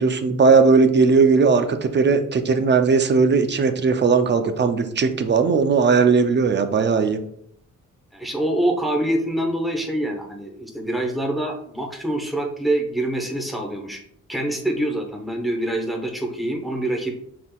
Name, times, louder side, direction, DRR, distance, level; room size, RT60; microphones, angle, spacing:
voice 1, 0.0-7.2, right 5 dB, 35° right, 8 dB, 0.5 m, -18 dB
voice 2, 8.1-14.0 14.3-17.1, right 1 dB, ahead, 1 dB, 0.9 m, -25 dB
6.1 x 3.8 x 2.3 m, 0.69 s
cardioid pair, 115°, 32 cm